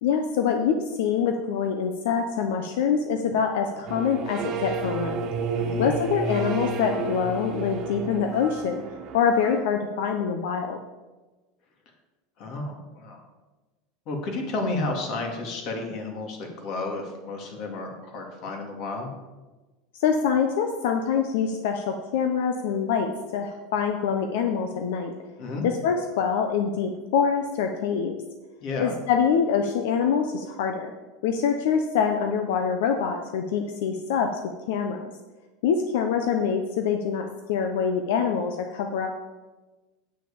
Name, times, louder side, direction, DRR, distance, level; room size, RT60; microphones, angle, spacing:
voice 1, 0.0-5.2 5.8-8.8 9.1-10.8 19.9-25.1 25.6-28.2 28.8-30.9 31.2-34.4 34.7-35.0 35.6-39.1, left 6 dB, 75° left, 5 dB, 0.9 m, -25 dB
sound 1, 3.9-9.6, right 3 dB, 35° right, 1.5 m, -31 dB
voice 2, 5.5-5.9 12.4-13.2 14.1-19.1 25.4-25.6 28.6-28.9, left 2 dB, 45° left, 2 dB, 2.4 m, -32 dB
9.4 x 6.3 x 7.0 m, 1.2 s
supercardioid pair, 165°, 0 cm